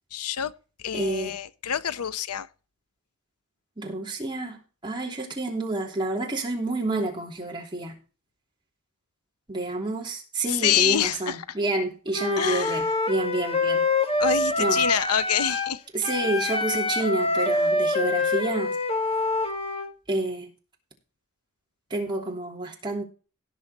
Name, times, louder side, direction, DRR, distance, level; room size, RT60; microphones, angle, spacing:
voice 1, 0.1-0.5 0.8-2.5 10.5-11.6 12.4-12.9 14.2-15.8 17.6-17.7, left 9 dB, 85° left, 0.7 m, -26 dB
voice 2, 0.9-1.4 3.8-8.0 9.5-13.8 14.6-14.8 15.9-18.7 20.1-20.5 21.9-23.0, right 2 dB, 20° right, 3.1 m, -29 dB
Wind instrument woodwind instrument, 12.1-15.7 16.0-19.9, left 2 dB, 25° left, 1.3 m, -25 dB
17.5 x 5.9 x 4.2 m
head